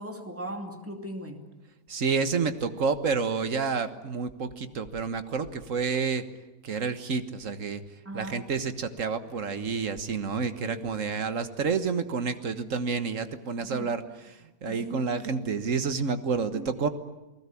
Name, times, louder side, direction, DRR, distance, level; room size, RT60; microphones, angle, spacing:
voice 1, 0.0-1.4 8.0-8.4 10.6-10.8 13.6-13.9 14.6-15.0 16.5-16.7, right 1 dB, 10° right, 4 dB, 2.7 m, -38 dB
voice 2, 1.9-6.2 6.6-7.8 8.1-16.9, right 5 dB, 55° right, 11 dB, 1.7 m, -29 dB
29.5 x 19.5 x 8.5 m, 1.1 s
omnidirectional pair, 1.6 m